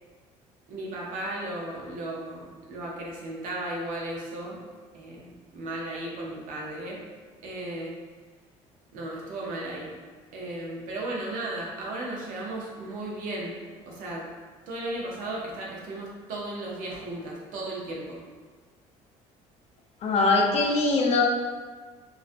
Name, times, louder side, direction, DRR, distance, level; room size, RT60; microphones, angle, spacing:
voice 1, 0.7-4.6 4.9-7.0 7.4-7.9 8.9-9.9 10.3-13.6 13.9-14.3 14.7-18.2, right 1 dB, 70° right, -3 dB, 0.6 m, -35 dB
voice 2, 20.0-21.2, left 3 dB, 45° left, 0 dB, 0.4 m, -22 dB
2.3 x 2.1 x 2.5 m, 1.4 s
supercardioid pair, 90°, 14 cm